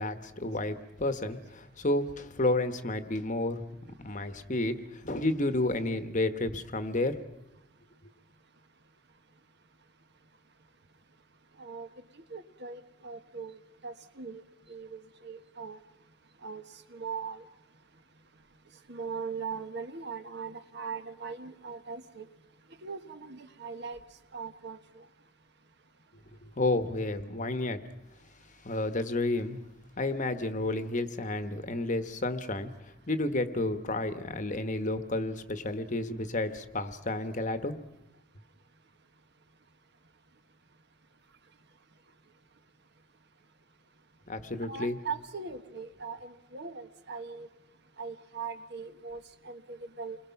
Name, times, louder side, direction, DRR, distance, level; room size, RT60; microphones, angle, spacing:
voice 1, 0.0-3.8 4.0-4.8 5.0-7.2 26.6-27.8 28.6-29.6 30.0-32.7 33.1-37.8 44.3-45.0, left 2 dB, 35° left, 10 dB, 1.2 m, -31 dB
voice 2, 11.6-11.9 12.3-13.6 13.8-14.4 14.7-15.8 16.4-16.6 16.9-17.4 18.9-22.2 22.8-24.0 24.3-25.0 44.7-47.5 48.0-50.2, right 5 dB, 50° right, 9 dB, 1.4 m, -40 dB
29.0 x 22.0 x 5.9 m, 0.92 s
head